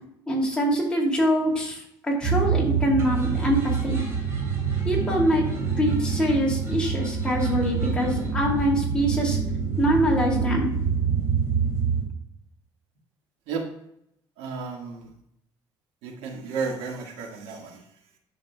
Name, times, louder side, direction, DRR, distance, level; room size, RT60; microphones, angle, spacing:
voice 1, 0.3-4.0 4.9-5.5 5.8-9.4 9.8-10.7 11.0-11.2, equal, 10° left, -3 dB, 2.5 m, -24 dB
sound 1, 2.2-12.0, right 6 dB, 30° right, 3.0 m, -26 dB
voice 2, 14.4-15.1 16.0-17.8, right 5 dB, 80° right, 2 dB, 1.7 m, -32 dB
10.5 x 6.5 x 2.3 m, 0.76 s
cardioid pair, 145°, 9 cm